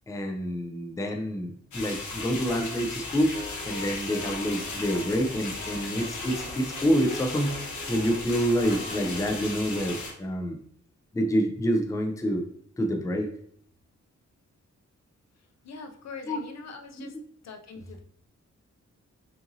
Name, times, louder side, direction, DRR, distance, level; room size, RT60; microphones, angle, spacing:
voice 1, 0.1-10.6 11.1-12.4 12.8-13.3 16.3-16.4 17.0-17.1, equal, 10° left, 3 dB, 0.4 m, -27 dB
sound 1, 1.7-10.1, left 3 dB, 85° left, 0.9 m, -36 dB
sound 2, 3.3-9.3, right 1 dB, 50° right, 1.0 m, -44 dB
voice 2, 15.6-17.2 17.4-18.0, left 4 dB, 65° left, 5 dB, 0.5 m, -42 dB
5.7 x 2.6 x 2.6 m, 0.64 s
wide cardioid pair, 175°, 29 cm